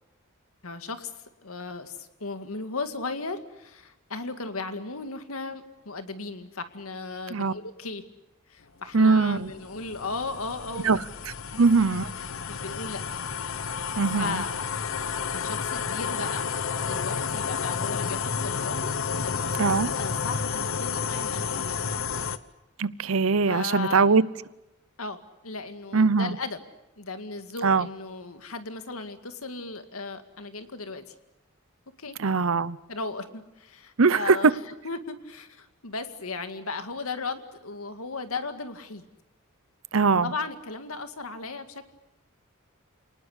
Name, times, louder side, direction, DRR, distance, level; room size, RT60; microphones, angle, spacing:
voice 1, 0.6-8.0 8.5-11.0 11.5-11.6 12.2-13.0 14.2-14.5 15.3-16.5 16.8-21.8 23.5-24.2 25.0-25.2 25.4-26.6 27.0-31.1 32.0-32.2 32.9-39.1 40.2-41.9, left 3 dB, 90° left, 2.1 m, -36 dB
sound 1, 8.9-22.4, left 6 dB, 65° left, 1.1 m, -31 dB
voice 2, 8.9-9.5 10.8-11.0 11.6-12.1 14.0-14.4 19.6-19.9 22.8-24.2 25.9-26.3 27.6-27.9 32.2-32.8 34.0-34.4 39.9-40.3, right 4 dB, 70° right, 0.8 m, -21 dB
29.0 x 19.5 x 8.2 m
head